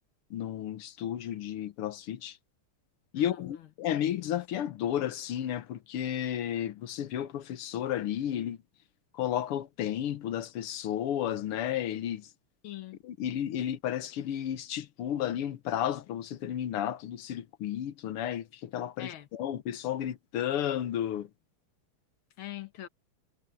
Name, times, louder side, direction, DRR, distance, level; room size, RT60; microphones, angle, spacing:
voice 1, 0.3-2.4 3.1-8.6 9.1-12.3 13.0-21.3, left 10 dB, 90° left, 1.9 m, -33 dB
voice 2, 3.1-3.7 12.6-13.0 19.0-19.3 22.4-22.9, left 13 dB, 70° left, 1.9 m, -43 dB
omnidirectional pair, 2.4 m